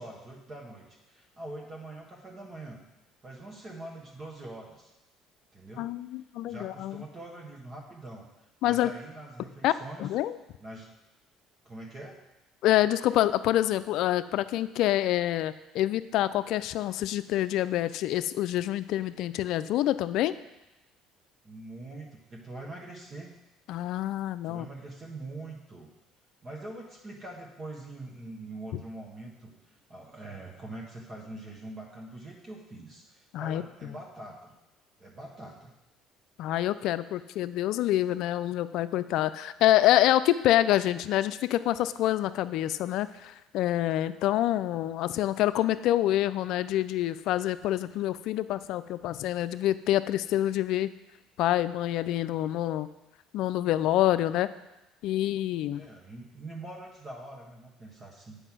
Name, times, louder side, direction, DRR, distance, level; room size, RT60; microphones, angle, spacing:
voice 1, 0.0-2.8 3.2-4.9 5.5-5.9 6.5-8.3 8.6-10.1 10.6-10.9 11.6-12.2 21.4-23.3 24.5-25.9 26.4-34.5 35.0-35.7 55.7-58.4, right 2 dB, 35° right, -1 dB, 1.5 m, -43 dB
voice 2, 5.8-7.0 8.6-8.9 9.6-9.7 10.0-10.4 12.6-20.3 23.7-24.7 33.3-33.6 36.4-50.9 51.4-52.9 53.3-54.5 55.0-55.8, left 13 dB, 70° left, 14 dB, 0.4 m, -26 dB
8.1 x 5.3 x 6.1 m, 0.98 s
supercardioid pair, 90°, 0 cm